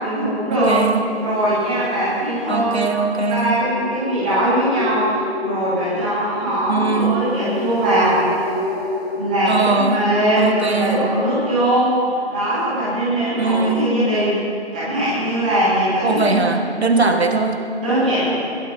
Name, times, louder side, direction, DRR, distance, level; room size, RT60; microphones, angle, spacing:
voice 1, 0.0-0.8 1.2-2.8 3.3-8.2 9.1-12.0 12.3-14.4 14.7-16.4 16.8-17.1 17.8-18.3, right 1 dB, 5° right, -10 dB, 1.7 m, -20 dB
voice 2, 0.5-1.1 2.5-3.6 6.7-7.2 9.5-10.1 10.4-11.1 13.4-14.1 16.0-17.7, right 3 dB, 70° right, 5 dB, 1.4 m, -20 dB
sound 1, 0.6-10.5, left 2 dB, 30° left, 3.8 m, -31 dB
21.0 x 16.0 x 2.6 m, 2.5 s
figure-of-eight pair, 165°, 34 cm